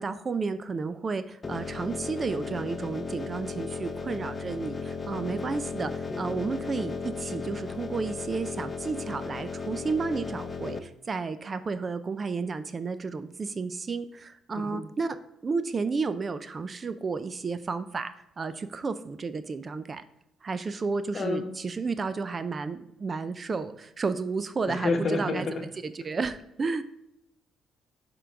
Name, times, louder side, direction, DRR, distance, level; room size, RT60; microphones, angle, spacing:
voice 1, 0.0-15.2 15.4-20.0 20.4-26.8, right 4 dB, 35° right, 12 dB, 0.4 m, -32 dB
sound 1, 1.4-10.8, left 4 dB, 30° left, 0.6 m, -35 dB
voice 2, 21.1-21.5 24.7-25.4, left 3 dB, 50° left, 6 dB, 1.1 m, -28 dB
6.7 x 3.8 x 4.6 m, 0.85 s
cardioid pair, 90°, 0 cm